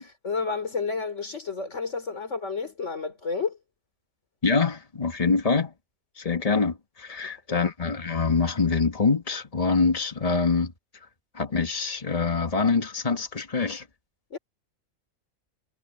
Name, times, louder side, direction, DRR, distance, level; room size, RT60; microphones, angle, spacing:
voice 1, 0.0-3.6 7.2-7.6 14.3-14.4, left 4 dB, 50° left, 3.8 m, -31 dB
voice 2, 4.4-5.7 6.2-10.7 11.3-13.8, left 4 dB, 25° left, 1.7 m, -25 dB
omnidirectional pair, 1.5 m